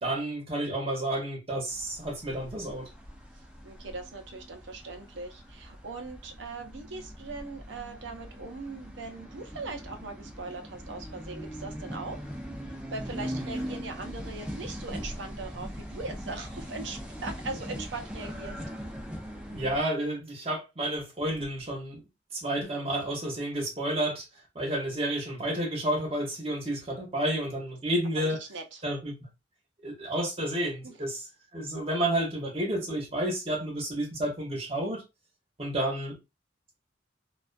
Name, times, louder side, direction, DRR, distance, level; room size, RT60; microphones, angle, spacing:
voice 1, 0.0-2.9 19.5-22.0 22.3-24.2 24.5-28.4 28.8-29.1 29.8-31.3 31.5-35.0 35.6-36.2, right 1 dB, 30° right, 0.9 m, -30 dB
sound 1, 1.7-19.8, equal, 5° right, 0.4 m, -41 dB
voice 2, 3.6-12.2 12.9-18.6 28.1-28.8 30.8-30.9, right 3 dB, 75° right, 0.6 m, -40 dB
2.4 x 2.3 x 2.4 m
head